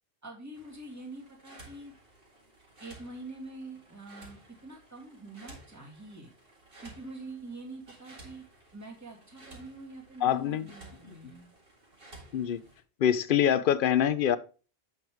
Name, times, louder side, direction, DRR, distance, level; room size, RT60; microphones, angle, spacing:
voice 1, 0.2-1.9 2.8-6.3 6.8-8.4 8.7-11.5, right 2 dB, 15° right, 2.1 m, -45 dB
sound 1, 0.5-12.8, right 2 dB, 55° right, 2.2 m, -54 dB
voice 2, 10.2-10.7 11.1-11.2 12.3-12.6 13.0-14.4, left 9 dB, 60° left, 0.7 m, -25 dB
7.8 x 6.3 x 3.5 m
omnidirectional pair, 1.1 m